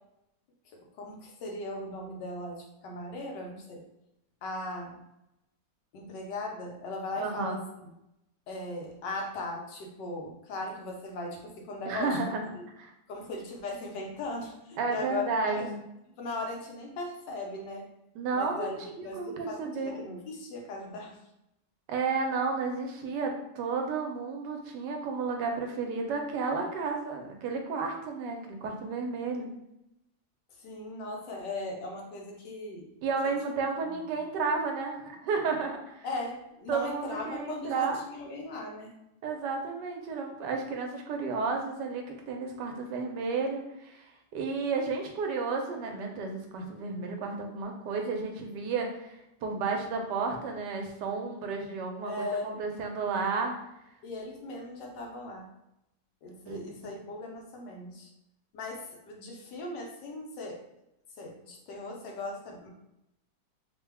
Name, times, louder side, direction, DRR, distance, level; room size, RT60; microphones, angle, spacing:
voice 1, 0.9-3.8 4.4-5.0 5.9-7.9 8.5-12.6 13.1-15.7 16.2-17.9 18.3-21.2 30.6-32.9 36.0-39.0 52.0-52.6 54.0-55.5 56.2-58.1 58.5-60.6 61.2-62.7, left 2 dB, 90° left, 0 dB, 1.4 m, -38 dB
voice 2, 7.2-7.6 11.9-12.9 14.8-15.8 18.1-20.0 21.9-29.5 33.0-36.1 36.7-38.0 39.2-49.1 49.4-53.5 56.5-56.6, right 4 dB, 85° right, 3 dB, 1.2 m, -32 dB
3.4 x 2.2 x 3.3 m, 0.84 s
omnidirectional pair, 1.8 m